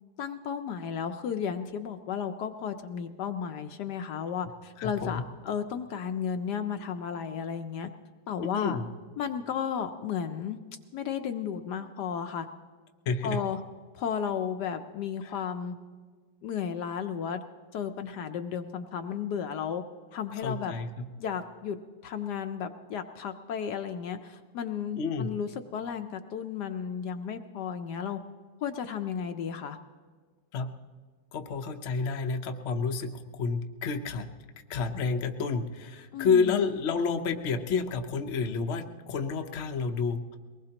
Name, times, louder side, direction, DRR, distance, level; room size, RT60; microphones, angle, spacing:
voice 1, 0.2-7.9 8.3-8.8 9.2-10.6 10.9-12.5 13.2-13.6 13.9-15.7 16.4-17.4 17.7-19.8 20.1-20.7 21.2-21.8 22.0-28.2 28.6-29.8 36.1-36.6, left 7 dB, 70° left, 7 dB, 1.1 m, -33 dB
voice 2, 4.8-5.2 8.5-8.8 13.1-13.4 20.4-20.9 25.0-25.3 30.5-30.7 31.3-34.3 34.7-40.4, left 5 dB, 55° left, 5 dB, 0.8 m, -29 dB
22.5 x 19.5 x 2.9 m, 1.5 s
omnidirectional pair, 2.1 m